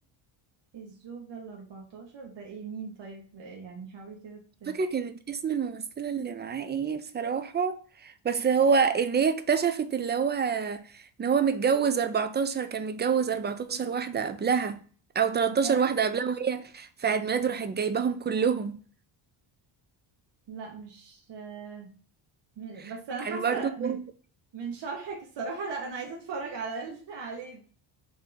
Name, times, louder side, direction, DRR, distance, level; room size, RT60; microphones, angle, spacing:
voice 1, 0.7-4.8 15.6-15.9 20.5-21.9 22.6-24.0 24.5-27.6, right 4 dB, 55° right, 1.1 m, -38 dB
voice 2, 4.7-14.8 15.1-18.8 23.2-24.0, right 6 dB, 25° right, 0.4 m, -27 dB
3.7 x 3.1 x 3.8 m
cardioid pair, 100°, 50 cm